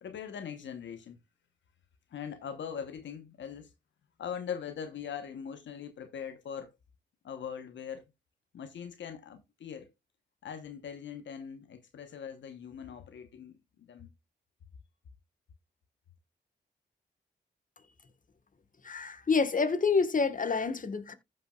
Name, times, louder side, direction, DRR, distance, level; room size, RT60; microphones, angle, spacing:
voice 1, 0.0-1.2 2.1-3.7 4.2-6.7 7.2-8.0 8.5-9.9 10.4-14.1, left 7 dB, 85° left, 1.0 m, -41 dB
voice 2, 18.8-21.1, left 4 dB, 45° left, 1.4 m, -28 dB
15.0 x 5.4 x 2.3 m
cardioid pair, 50°, 19 cm